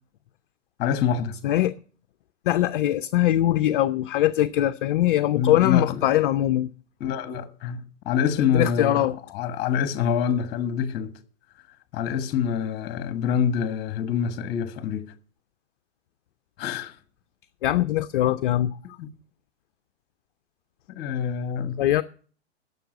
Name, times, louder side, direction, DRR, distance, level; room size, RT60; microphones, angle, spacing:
voice 1, 0.8-1.4 5.3-6.0 7.0-9.1 9.3-11.1 11.9-15.1 16.6-17.0 19.0-19.1 20.9-21.8, left 8 dB, 30° left, 1.3 m, -26 dB
voice 2, 1.4-1.8 2.5-6.7 8.5-9.2 17.6-18.7 21.8-22.0, left 13 dB, 45° left, 0.6 m, -22 dB
11.5 x 6.9 x 9.2 m
figure-of-eight pair, 120°, 35 cm